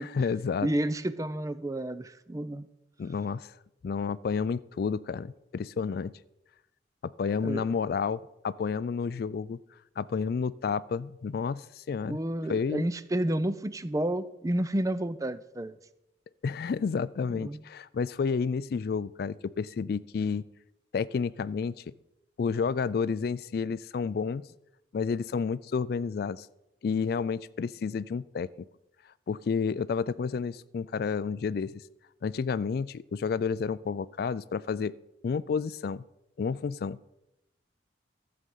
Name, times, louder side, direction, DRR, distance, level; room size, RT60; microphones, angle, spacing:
voice 1, 0.0-0.7 3.0-3.5 3.8-6.1 7.0-9.6 10.0-12.2 12.5-12.9 16.4-20.5 20.9-21.9 22.4-24.4 24.9-26.5 26.8-28.7 29.3-31.8 32.2-34.9 35.2-36.0 36.4-37.0, left 5 dB, 55° left, 19 dB, 0.3 m, -30 dB
voice 2, 0.6-2.7 7.4-7.6 12.0-15.8 17.4-17.6, right 1 dB, 20° right, 14 dB, 0.4 m, -30 dB
13.0 x 7.8 x 5.4 m, 0.88 s
head